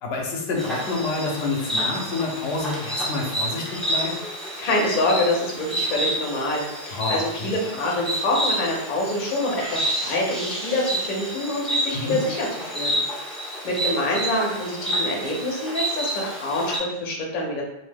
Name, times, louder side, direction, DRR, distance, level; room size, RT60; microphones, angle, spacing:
voice 1, 0.0-4.1 6.9-7.5 11.9-12.2, left 3 dB, 80° left, 0 dB, 0.8 m, -28 dB
Insect, 0.6-16.8, right 1 dB, ahead, 0.6 m, -29 dB
voice 2, 4.6-13.0 13.3-17.6, left 1 dB, 55° left, -2 dB, 0.8 m, -26 dB
2.7 x 2.0 x 3.3 m, 0.90 s
omnidirectional pair, 1.0 m